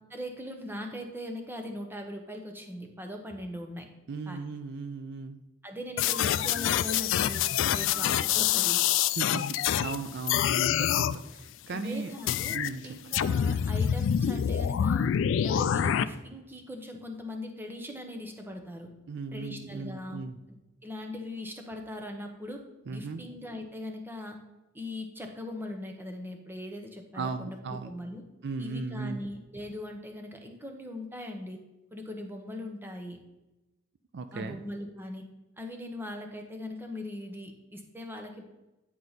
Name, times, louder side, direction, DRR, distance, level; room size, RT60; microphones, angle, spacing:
voice 1, 0.1-3.9 4.3-4.4 5.6-7.4 7.7-8.8 11.7-12.6 12.8-15.1 15.4-18.9 19.3-20.3 20.8-22.6 22.9-24.4 24.7-27.6 27.8-28.2 28.6-31.6 31.9-33.2 34.3-35.2 35.6-38.4, left 1 dB, 10° right, 4 dB, 0.8 m, -40 dB
voice 2, 4.1-5.4 9.1-12.1 12.5-12.9 19.1-20.4 22.9-23.2 27.1-27.9 28.4-29.2 34.1-34.6, right 4 dB, 55° right, 9 dB, 0.4 m, -37 dB
sound 1, 6.0-10.0 10.3-11.2 12.3-12.7 13.1-16.0, left 9 dB, 65° left, 0.3 m, -26 dB
9.3 x 4.6 x 4.0 m, 0.99 s
head